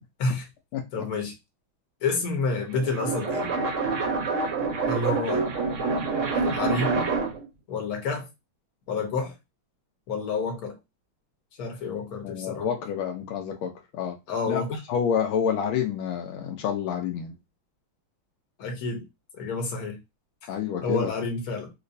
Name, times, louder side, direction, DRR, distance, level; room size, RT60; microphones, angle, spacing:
voice 1, 0.9-1.3 2.0-3.5 4.9-5.4 6.3-7.1 7.7-8.3 8.9-9.4 10.1-10.8 11.6-12.7 14.3-14.8 18.6-19.0 19.3-20.0 20.8-21.7, left 3 dB, 55° left, 1.3 m, -29 dB
sound 1, 2.6-7.5, right 4 dB, 65° right, 0.8 m, -27 dB
voice 2, 12.2-14.2 14.5-14.6 14.9-17.3 20.5-21.1, left 8 dB, 80° left, 1.4 m, -28 dB
3.3 x 3.0 x 2.6 m
omnidirectional pair, 2.2 m